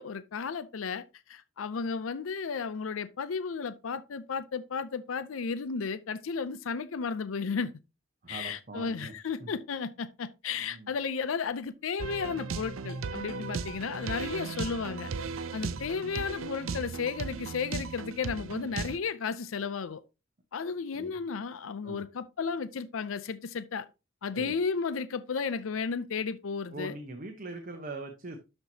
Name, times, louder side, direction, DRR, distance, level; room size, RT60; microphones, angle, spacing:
voice 1, 0.0-7.7 8.3-15.1 15.5-20.0 20.5-23.9 24.2-26.9, left 5 dB, 75° left, 0.5 m, -33 dB
voice 2, 8.2-9.1 9.4-9.5 10.6-10.9 20.9-21.2 21.8-22.0 24.3-24.6 26.7-28.4, right 2 dB, 45° right, 1.0 m, -42 dB
sound 1, 12.0-19.0, right 4 dB, 90° right, 0.6 m, -36 dB
12.0 x 4.4 x 2.8 m
head